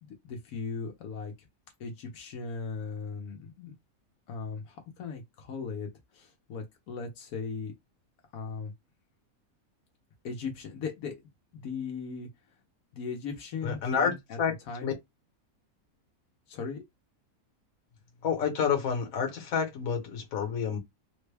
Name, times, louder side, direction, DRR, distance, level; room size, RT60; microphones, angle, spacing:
voice 1, 0.0-1.5 1.8-3.7 4.3-7.7 8.3-8.7 10.2-11.2 11.5-12.6 12.9-14.4 14.7-14.9 16.5-16.8, left 5 dB, 85° left, 1.2 m, -38 dB
voice 2, 13.6-14.1 14.4-14.5 14.8-14.9 18.2-20.8, left 7 dB, 70° left, 1.4 m, -28 dB
3.6 x 2.1 x 3.3 m
omnidirectional pair, 1.5 m